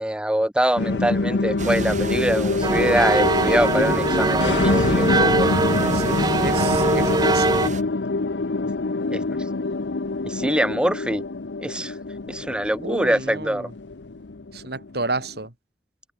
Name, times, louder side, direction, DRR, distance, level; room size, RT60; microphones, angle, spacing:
voice 1, 0.0-5.1 9.1-9.2 10.3-11.2 11.6-12.0 12.3-13.7, right 1 dB, 5° right, 0.6 m, -24 dB
sound 1, 0.8-15.4, left 3 dB, 75° left, 0.8 m, -25 dB
sound 2, 1.6-7.8, right 2 dB, 45° right, 2.4 m, -32 dB
sound 3, 2.6-7.7, right 2 dB, 25° right, 1.2 m, -22 dB
voice 2, 5.5-7.6 12.8-13.7 14.5-15.5, right 3 dB, 60° right, 3.7 m, -31 dB
head